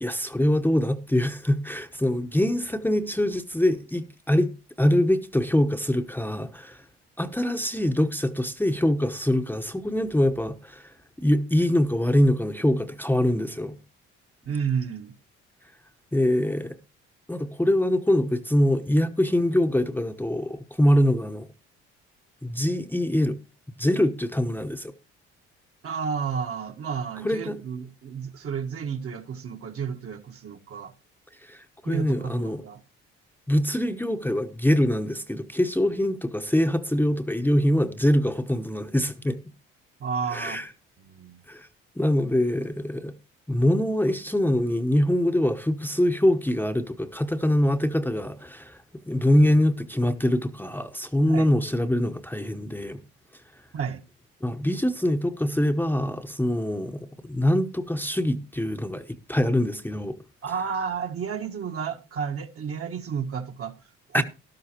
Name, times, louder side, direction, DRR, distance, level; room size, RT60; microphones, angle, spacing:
voice 1, 0.0-4.5 4.8-6.8 7.2-13.8 16.1-16.8 17.3-21.5 22.4-23.4 23.8-24.9 27.2-27.6 31.4-32.6 33.5-39.4 40.3-40.6 41.5-41.7 42.0-43.1 43.5-48.8 49.1-53.0 54.4-60.2 64.1-64.2, left 1 dB, 5° left, 0.9 m, -24 dB
voice 2, 14.4-15.1 25.8-30.9 31.8-32.8 40.0-40.7 41.0-41.4 51.2-51.5 53.7-54.0 60.4-64.2, right 6 dB, 50° right, 1.4 m, -31 dB
13.0 x 12.0 x 2.9 m
supercardioid pair, 65°, 29 cm